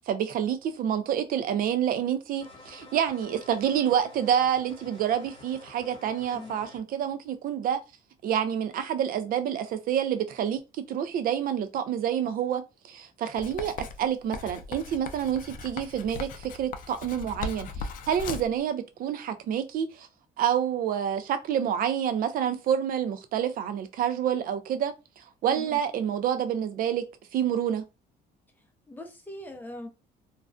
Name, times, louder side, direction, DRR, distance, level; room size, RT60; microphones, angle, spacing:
voice 1, 0.1-7.8 8.2-10.6 10.9-20.1 20.4-24.9 25.4-27.0 27.3-27.8, right 9 dB, 55° right, 0.4 m, -28 dB
sound 1, 2.4-6.8, left 2 dB, 30° left, 1.2 m, -50 dB
Writing, 13.4-18.6, left 4 dB, 55° left, 0.4 m, -38 dB
voice 2, 28.9-29.9, left 1 dB, 10° left, 0.6 m, -41 dB
2.4 x 2.1 x 2.4 m
cardioid pair, 110°, 17 cm